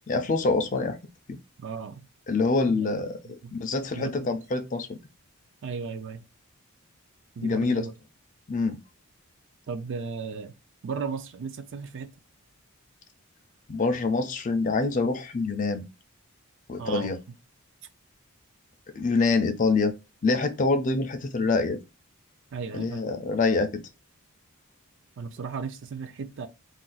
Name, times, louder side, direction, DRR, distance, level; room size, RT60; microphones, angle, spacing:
voice 1, 0.1-1.0 1.3-1.4 2.3-3.2 3.5-4.9 7.4-7.8 8.5-8.8 13.7-15.8 16.7-17.2 18.9-19.9 20.2-21.8 22.7-23.8, left 3 dB, 35° left, 0.3 m, -25 dB
voice 2, 1.6-2.1 2.8-2.9 3.2-3.5 3.9-4.4 5.6-6.2 7.4-7.9 9.7-10.6 10.8-12.1 16.8-17.1 22.5-23.0 25.2-26.5, right 5 dB, 55° right, 0.4 m, -35 dB
2.4 x 2.3 x 3.9 m
head